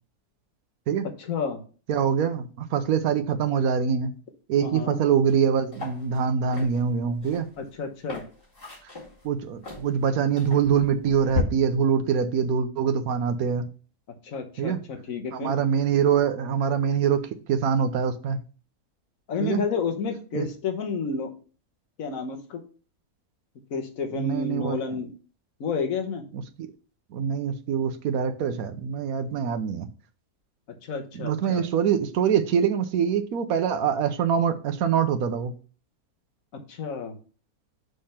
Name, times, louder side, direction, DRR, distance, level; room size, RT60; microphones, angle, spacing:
voice 1, 1.2-1.6 4.6-5.0 7.6-8.2 14.2-15.5 19.3-21.3 22.0-22.6 23.7-25.1 25.6-26.2 30.9-31.6 36.7-37.1, left 5 dB, 60° left, 4 dB, 1.5 m, -30 dB
voice 2, 1.9-4.2 4.5-7.5 9.2-13.7 14.6-14.8 15.3-18.4 19.4-19.6 20.3-20.5 24.1-25.0 26.3-26.7 27.1-29.9 31.1-35.5, right 7 dB, 70° right, 9 dB, 1.2 m, -24 dB
sound 1, 5.3-5.4 5.7-11.4, left 6 dB, 35° left, 2.6 m, -36 dB
6.5 x 3.5 x 5.7 m, 0.37 s
omnidirectional pair, 1.7 m